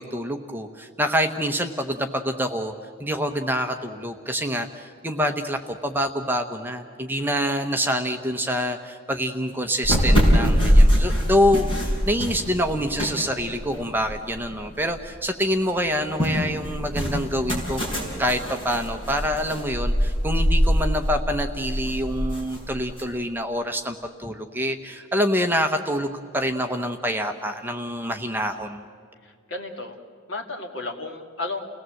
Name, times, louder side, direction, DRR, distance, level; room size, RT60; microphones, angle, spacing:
voice 1, 0.0-2.7 3.0-17.8 18.2-28.8, equal, 10° right, 5 dB, 0.9 m, -26 dB
voice 2, 7.2-7.7 29.2-30.0 30.3-31.6, left 2 dB, 60° left, 3 dB, 2.4 m, -34 dB
sound 1, 9.8-15.0 15.4-23.0, equal, 25° left, 5.6 m, -23 dB
30.0 x 18.5 x 7.8 m, 2.2 s
head